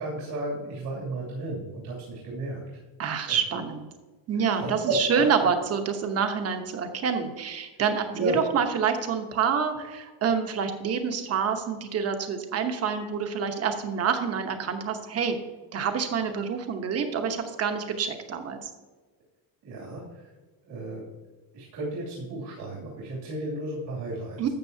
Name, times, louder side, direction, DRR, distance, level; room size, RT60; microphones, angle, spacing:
voice 1, 0.0-2.6 3.3-3.6 4.4-4.9 8.1-8.4 19.6-20.3 20.7-21.0 21.5-24.5, right 2 dB, 75° right, -5 dB, 2.7 m, -33 dB
voice 2, 3.0-3.9 4.3-15.4 15.7-18.7 24.4-24.5, right 6 dB, 35° right, 6 dB, 1.0 m, -27 dB
12.0 x 7.6 x 2.7 m, 1.3 s
cardioid pair, 165°, 41 cm